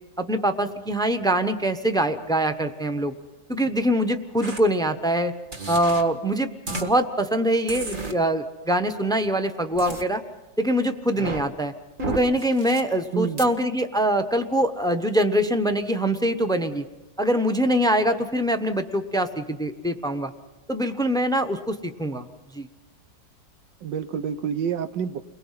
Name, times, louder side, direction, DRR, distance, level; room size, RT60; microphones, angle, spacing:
voice 1, 0.2-3.1 3.5-5.3 5.7-10.2 10.6-11.7 12.1-16.8 17.2-20.3 20.7-22.3 22.5-22.7, right 1 dB, 5° left, 8 dB, 0.4 m, -23 dB
sound 1, 4.4-4.6 5.5-6.0 6.7-6.9 7.7-8.1 9.8-10.0 11.1-11.4 12.0-12.8 13.4-13.5, right 2 dB, 30° right, 1.8 m, -32 dB
voice 2, 13.1-13.5 23.8-25.2, right 7 dB, 75° right, 11 dB, 1.6 m, -28 dB
29.5 x 22.0 x 5.8 m, 1.1 s
omnidirectional pair, 2.0 m